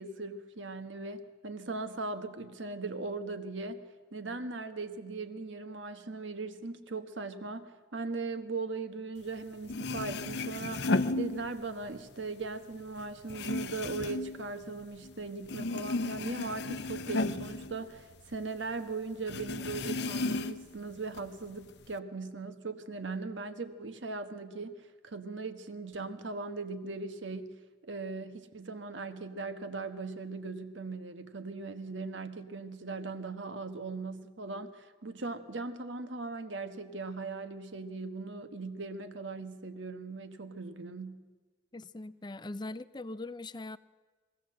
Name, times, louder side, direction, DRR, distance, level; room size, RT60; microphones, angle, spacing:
voice 1, 0.0-3.8 4.1-27.6 27.8-41.3, right 3 dB, 80° right, 9 dB, 1.3 m, -39 dB
sound 1, 9.4-9.5 9.6-11.9 12.2-15.1 15.4-18.4 18.7-18.8 19.3-20.8 21.1-21.9, left 2 dB, 60° left, 0.7 m, -34 dB
voice 2, 41.7-43.8, left 2 dB, 25° left, 15 dB, 0.5 m, -41 dB
22.5 x 15.5 x 7.7 m, 1.4 s
head